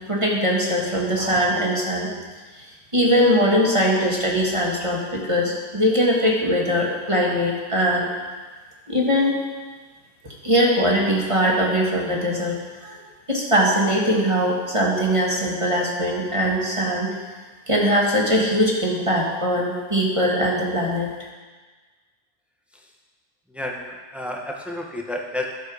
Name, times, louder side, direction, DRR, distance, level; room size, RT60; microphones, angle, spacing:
voice 1, 0.1-2.1 2.6-2.7 2.9-8.1 8.9-9.4 10.4-13.0 13.3-17.1 17.7-21.1, equal, 20° right, -3 dB, 1.3 m, -21 dB
voice 2, 23.5-25.4, left 1 dB, ahead, 0 dB, 0.4 m, -30 dB
11.5 x 6.6 x 4.9 m, 1.4 s
omnidirectional pair, 1.8 m